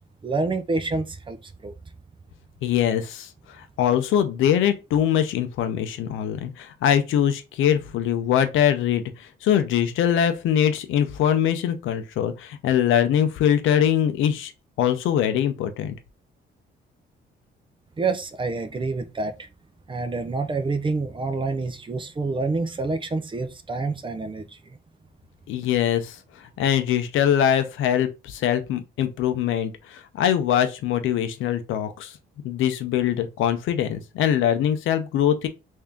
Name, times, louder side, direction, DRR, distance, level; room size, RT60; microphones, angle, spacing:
voice 1, 0.2-1.7 18.0-19.5 19.9-24.6, right 3 dB, 25° right, 0.6 m, -27 dB
voice 2, 2.6-3.3 3.6-14.5 14.8-16.0 25.5-32.1 32.4-35.5, left 9 dB, 85° left, 0.6 m, -23 dB
3.5 x 2.7 x 3.5 m
cardioid pair, 90°, 20 cm